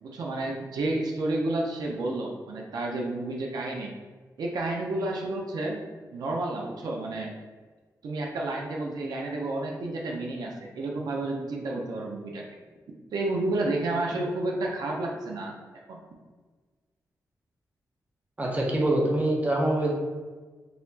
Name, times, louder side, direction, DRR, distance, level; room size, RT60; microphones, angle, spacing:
voice 1, 0.0-3.9 4.4-5.8 6.1-7.3 8.0-12.5 13.1-15.5 15.9-16.0, right 2 dB, 90° right, -1 dB, 0.5 m, -30 dB
voice 2, 18.4-19.9, right 1 dB, 20° right, -1 dB, 0.7 m, -24 dB
4.0 x 2.8 x 2.7 m, 1.4 s
wide cardioid pair, 130°, 7 cm